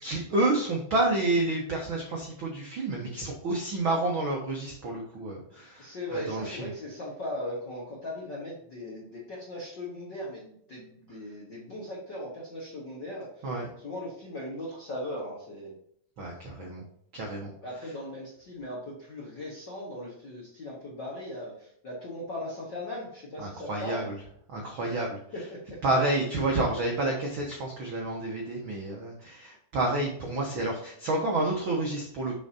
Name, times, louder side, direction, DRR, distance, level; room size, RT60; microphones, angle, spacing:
voice 1, 0.0-6.7 13.4-13.7 16.2-16.8 17.1-17.5 17.8-17.9 23.4-24.1 24.5-25.2 25.8-32.4, right 2 dB, 80° right, -1 dB, 1.1 m, -29 dB
voice 2, 5.8-13.5 13.8-15.7 17.6-24.1 24.9-25.0 25.3-25.6, left 1 dB, 55° left, -4 dB, 1.3 m, -38 dB
7.0 x 6.2 x 2.8 m, 0.68 s
omnidirectional pair, 4.2 m